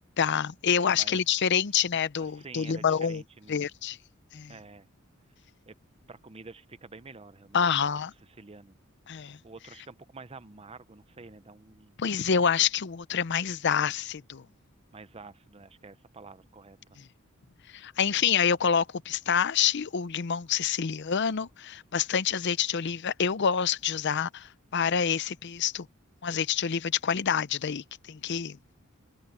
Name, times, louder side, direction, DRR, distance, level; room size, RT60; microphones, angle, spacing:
voice 1, 0.2-3.2 3.5-4.0 4.3-4.5 7.5-8.1 9.1-9.4 12.0-14.4 17.7-25.9 26.2-28.6, left 7 dB, 55° left, 0.6 m, -27 dB
voice 2, 0.9-1.2 2.2-3.7 4.5-4.9 5.7-5.8 6.1-7.9 8.4-8.8 9.4-12.0 14.9-17.0, right 3 dB, 30° right, 0.7 m, -48 dB
head